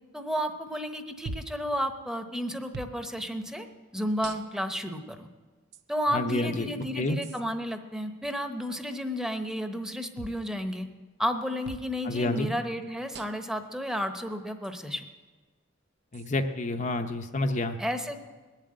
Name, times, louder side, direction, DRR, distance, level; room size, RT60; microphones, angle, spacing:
voice 1, 0.1-3.7 3.9-5.3 5.9-10.9 11.2-15.0 17.8-18.2, equal, 5° right, 7 dB, 0.9 m, -32 dB
sound 1, 1.3-1.6 2.7-3.0 4.2-4.7 5.7-5.8 7.2-7.4 10.2-10.4 11.6-11.9 13.1-13.5 14.6-14.7 16.1-16.3, right 3 dB, 60° right, 0.7 m, -41 dB
voice 2, 6.1-7.2 12.0-12.5 16.1-17.8, left 2 dB, 40° left, 6 dB, 0.7 m, -29 dB
20.5 x 7.5 x 8.8 m, 1.3 s
head